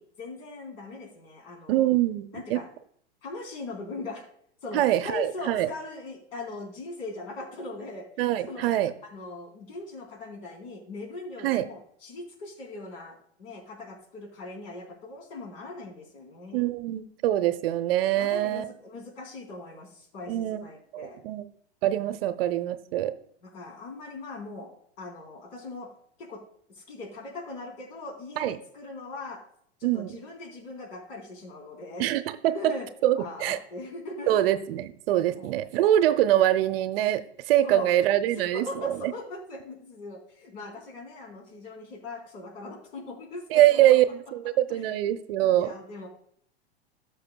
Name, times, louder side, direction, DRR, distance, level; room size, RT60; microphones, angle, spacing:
voice 1, 0.0-1.9 2.3-2.7 3.2-4.3 4.6-8.7 9.0-16.7 18.2-20.3 20.6-21.2 22.0-22.1 23.4-25.9 26.2-26.4 26.8-29.4 29.8-32.1 32.5-32.9 33.2-34.4 35.3-35.6 37.6-37.9 38.3-44.1 44.7-45.1 45.4-46.1, left 2 dB, 60° left, 1 dB, 3.7 m, -40 dB
voice 2, 1.7-2.6 4.7-5.7 8.2-8.9 11.4-11.6 16.5-18.6 20.3-20.6 20.9-21.4 21.8-23.1 28.4-28.6 29.8-30.2 32.0-32.7 33.0-33.6 34.3-39.1 43.5-44.0 44.3-45.7, right 13 dB, 60° right, 11 dB, 0.7 m, -24 dB
15.0 x 6.4 x 2.2 m, 0.66 s
hypercardioid pair, 110°, 33 cm